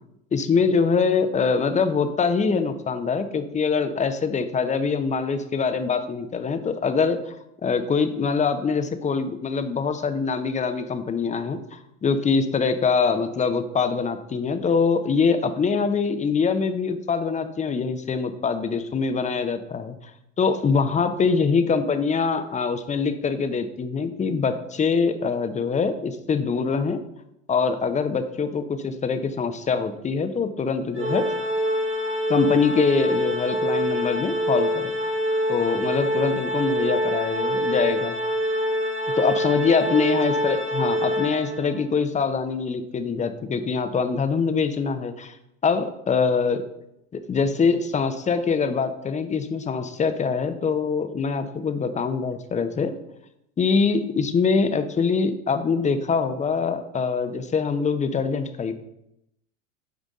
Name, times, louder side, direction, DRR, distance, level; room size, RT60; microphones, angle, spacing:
voice 1, 0.3-7.3 7.6-19.9 20.4-27.0 27.5-31.3 32.3-34.9 35.5-38.1 39.2-45.3 45.6-46.6 47.1-52.9 53.6-58.7, left 5 dB, 20° left, 9 dB, 0.8 m, -24 dB
Organ, 31.0-41.8, equal, 35° right, 1.9 m, -25 dB
9.4 x 5.0 x 3.7 m, 0.82 s
hypercardioid pair, 80°, 38 cm